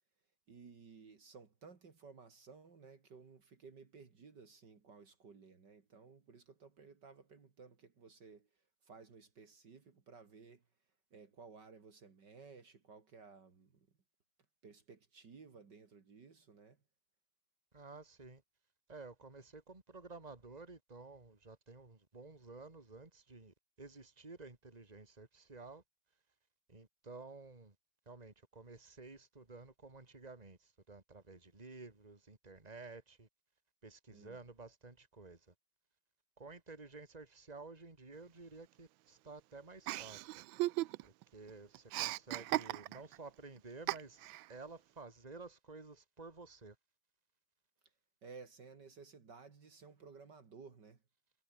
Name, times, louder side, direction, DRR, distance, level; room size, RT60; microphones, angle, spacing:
voice 1, 0.5-8.5 8.8-10.6 11.1-13.9 14.6-16.8 34.1-34.4 48.2-51.0, right 5 dB, 60° right, 2.9 m, -57 dB
voice 2, 17.7-18.4 18.9-25.8 26.7-27.7 28.1-33.3 33.8-35.5 36.4-40.3 41.0-46.8, right 3 dB, 20° right, 2.9 m, -53 dB
Chuckle chortle, 39.9-41.2 41.5-43.2 43.9-44.5, right 18 dB, 80° right, 1.3 m, -37 dB
omnidirectional pair, 2.1 m